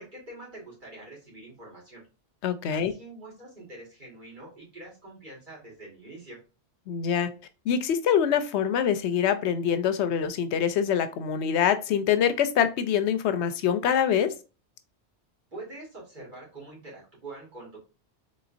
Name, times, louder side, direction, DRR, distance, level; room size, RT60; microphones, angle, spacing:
voice 1, 0.0-2.0 2.7-6.4 15.5-17.8, right 2 dB, 45° right, -5 dB, 2.3 m, -45 dB
voice 2, 2.4-2.9 6.9-7.3 7.7-14.3, left 8 dB, 80° left, 11 dB, 0.9 m, -25 dB
3.9 x 3.6 x 2.5 m, 0.33 s
omnidirectional pair, 1.1 m